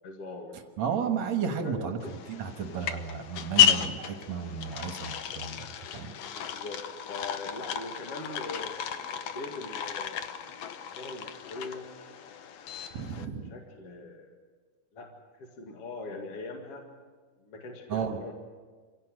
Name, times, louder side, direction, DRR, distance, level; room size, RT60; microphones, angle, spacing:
voice 1, 0.0-0.7 1.6-2.1 6.3-8.8 9.1-10.5 11.0-11.9 12.2-12.4 13.2-14.3 14.9-16.9 17.4-18.3, left 2 dB, 45° left, 2 dB, 2.5 m, -42 dB
voice 2, 0.8-2.0 2.3-6.2 12.9-13.5 17.9-18.2, right 7 dB, 60° right, 5 dB, 2.2 m, -33 dB
sound 1, 2.0-13.2, left 9 dB, 80° left, 1.5 m, -32 dB
27.0 x 17.0 x 7.7 m, 1.5 s
omnidirectional pair, 4.4 m